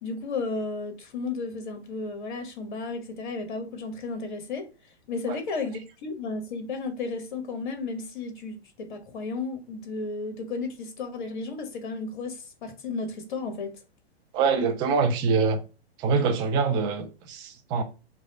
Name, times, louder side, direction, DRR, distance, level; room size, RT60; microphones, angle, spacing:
voice 1, 0.0-4.7 5.1-13.7, left 3 dB, 50° left, 1.2 m, -33 dB
voice 2, 14.3-15.6 16.0-17.8, right 5 dB, 15° right, 0.4 m, -24 dB
4.7 x 2.3 x 4.0 m
figure-of-eight pair, 110°, 32 cm